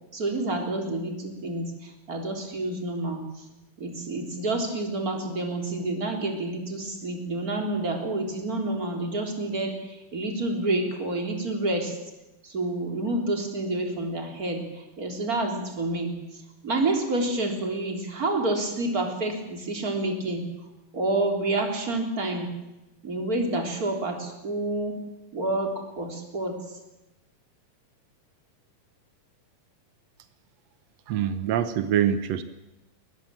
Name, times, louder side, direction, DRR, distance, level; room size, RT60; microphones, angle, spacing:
voice 1, 0.1-3.4 3.8-12.0 12.4-16.1 16.6-20.4 20.9-22.5 23.0-25.0 25.3-25.7 26.0-26.5, right 2 dB, 25° right, 3 dB, 3.6 m, -28 dB
voice 2, 31.1-32.4, right 9 dB, 90° right, 11 dB, 1.4 m, -24 dB
22.0 x 19.5 x 7.6 m, 0.99 s
omnidirectional pair, 4.4 m